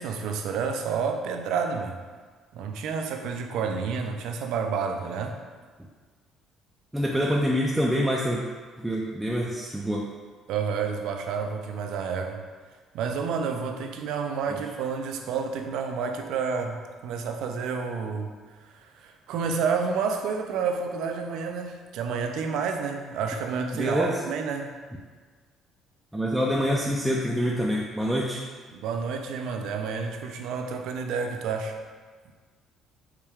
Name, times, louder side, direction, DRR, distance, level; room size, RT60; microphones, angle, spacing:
voice 1, 0.0-2.0 2.5-5.4 10.5-12.4 12.9-18.3 18.7-24.7 28.8-31.8, right 5 dB, 75° right, 5 dB, 0.4 m, -29 dB
voice 2, 6.9-8.4 8.8-10.1 23.7-24.1 26.1-28.4, equal, 5° right, -3 dB, 0.4 m, -26 dB
4.5 x 2.2 x 3.4 m, 1.5 s
cardioid pair, 90°, 0 cm